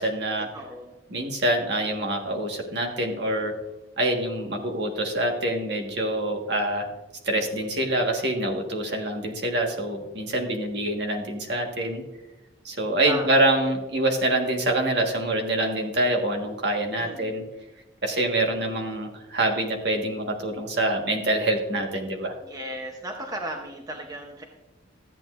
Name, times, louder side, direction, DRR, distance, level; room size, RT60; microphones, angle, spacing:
voice 1, 0.0-0.5 1.1-3.5 4.0-6.9 7.2-12.0 12.6-17.4 18.0-22.3, right 1 dB, 60° right, 3 dB, 1.5 m, -25 dB
voice 2, 0.5-1.0 13.0-13.5 16.9-17.4 22.4-24.4, right 1 dB, 20° right, 2 dB, 0.8 m, -36 dB
13.5 x 8.6 x 2.5 m, 1.0 s
head